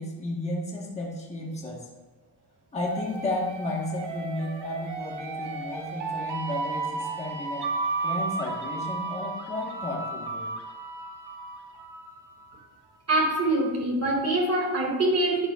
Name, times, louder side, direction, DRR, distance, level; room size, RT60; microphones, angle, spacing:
voice 1, 0.0-1.9 2.7-7.7 8.0-10.5, left 1 dB, 15° left, -2 dB, 1.2 m, -33 dB
sound 1, 2.8-12.5, right 3 dB, 85° right, 1.2 m, -34 dB
voice 2, 13.1-15.5, right 1 dB, 40° right, 0 dB, 2.0 m, -24 dB
10.5 x 9.0 x 2.4 m, 1.2 s
wide cardioid pair, 175°, 40 cm